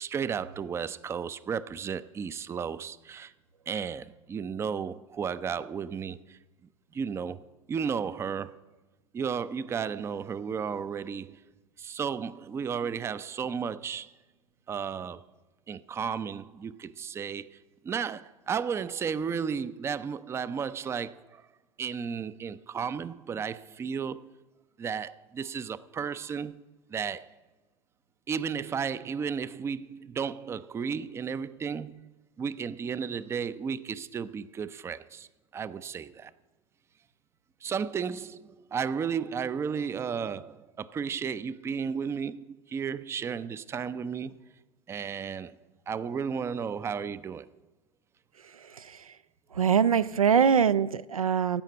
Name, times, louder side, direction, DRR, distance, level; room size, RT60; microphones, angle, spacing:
voice 1, 0.0-3.3 3.7-6.2 6.9-7.4 7.7-8.5 9.1-11.4 11.8-14.1 14.7-15.2 15.7-17.5 17.8-21.4 21.8-24.3 24.8-26.6 26.9-27.3 28.3-32.0 32.4-35.3 35.5-36.3 37.6-44.3 44.9-45.5 45.9-47.5, right 6 dB, 15° right, 0.4 m, -33 dB
voice 2, 49.6-51.6, right 7 dB, 85° right, 0.4 m, -23 dB
15.5 x 5.8 x 8.4 m
figure-of-eight pair, 85°, 17 cm